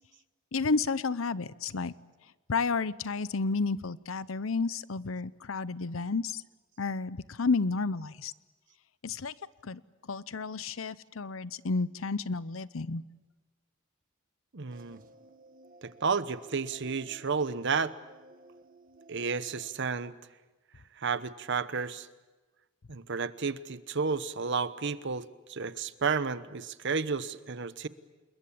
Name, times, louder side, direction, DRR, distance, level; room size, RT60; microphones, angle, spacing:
voice 1, 0.5-1.9 2.5-6.4 6.8-8.3 9.0-9.3 9.6-13.0, left 4 dB, 90° left, 18 dB, 0.8 m, -31 dB
voice 2, 14.5-15.0 15.8-17.9 19.1-20.1 21.0-22.1 22.9-27.9, right 5 dB, 65° right, 14 dB, 1.0 m, -32 dB
sound 1, 14.7-19.7, right 2 dB, 45° right, 1.5 m, -55 dB
28.0 x 21.5 x 8.6 m, 1.2 s
head